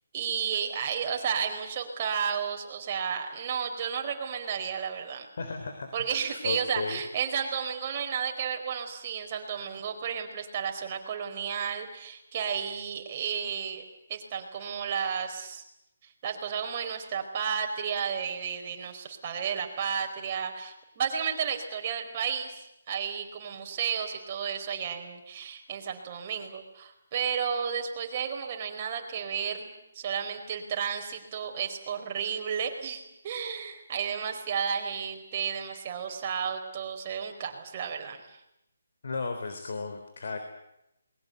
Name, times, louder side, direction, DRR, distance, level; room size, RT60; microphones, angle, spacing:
voice 1, 0.1-5.3 5.9-13.8 14.1-15.6 16.2-22.6 22.9-38.4, right 7 dB, 30° right, 3 dB, 4.6 m, -32 dB
voice 2, 5.4-7.0 39.0-40.4, left 4 dB, 60° left, 6 dB, 3.7 m, -35 dB
28.5 x 21.5 x 8.0 m, 0.83 s
hypercardioid pair, 160°, 0 cm